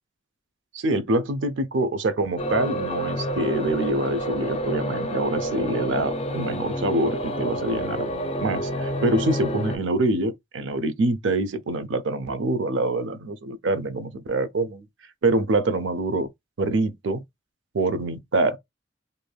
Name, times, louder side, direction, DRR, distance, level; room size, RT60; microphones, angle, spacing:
voice 1, 0.7-8.1 8.4-14.9 15.2-16.3 16.6-17.2 17.7-18.6, right 2 dB, 80° right, 0.5 m, -25 dB
sound 1, 2.4-9.8, equal, 30° left, 0.4 m, -29 dB
3.2 x 2.6 x 2.3 m
head